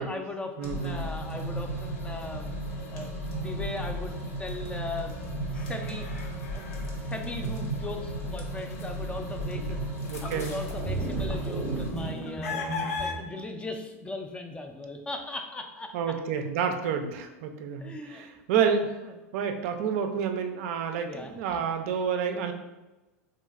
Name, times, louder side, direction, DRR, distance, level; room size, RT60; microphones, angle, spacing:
voice 1, 0.0-2.5 2.9-3.1 3.4-4.1 4.4-5.2 5.5-6.1 6.5-6.6 7.0-16.2 17.8-18.3 19.0-19.2 21.0-21.6, left 2 dB, 15° left, 4 dB, 0.3 m, -38 dB
sound 1, 0.6-11.9, right 1 dB, 75° left, 0.8 m, -34 dB
voice 2, 0.6-1.0 9.5-9.6 10.1-10.5 15.9-18.9 19.3-22.5, right 7 dB, 65° right, 6 dB, 0.4 m, -29 dB
sound 2, 3.3-4.6 5.1-8.0 8.4-13.1, left 5 dB, 90° left, 0.4 m, -40 dB
sound 3, 10.7-13.2, right 2 dB, 15° right, 0.7 m, -34 dB
3.0 x 2.6 x 2.4 m, 1.1 s
hypercardioid pair, 105°, 8 cm